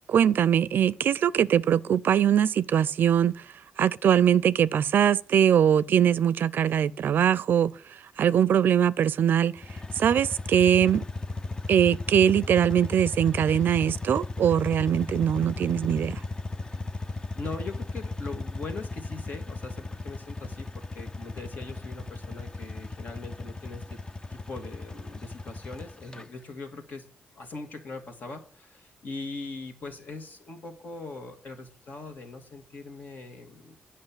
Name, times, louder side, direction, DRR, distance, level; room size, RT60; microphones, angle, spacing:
voice 1, 0.1-3.3 3.8-7.7 8.2-9.5 10.0-11.0 11.7-16.2, right 9 dB, 70° right, 0.4 m, -22 dB
sound 1, 9.6-26.3, left 3 dB, 25° left, 0.6 m, -36 dB
voice 2, 17.1-24.0 24.3-27.0 27.3-33.8, left 3 dB, 55° left, 2.1 m, -41 dB
8.9 x 5.5 x 7.4 m
cardioid pair, 90°, 4 cm